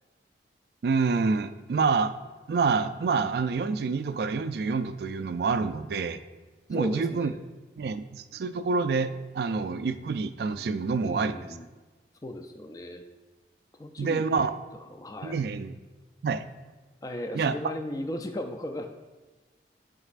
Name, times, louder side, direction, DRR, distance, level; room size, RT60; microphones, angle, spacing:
voice 1, 0.8-2.1 2.5-6.2 6.7-7.3 7.8-11.4 14.0-14.5 15.2-15.7 16.2-16.4 17.3-17.5, right 4 dB, 65° right, 11 dB, 0.3 m, -27 dB
voice 2, 6.7-7.4 11.0-11.7 12.2-13.0 13.7-14.5 14.8-15.5 17.0-18.9, left 1 dB, 20° left, 6 dB, 0.4 m, -36 dB
11.0 x 5.3 x 2.5 m, 1.2 s
head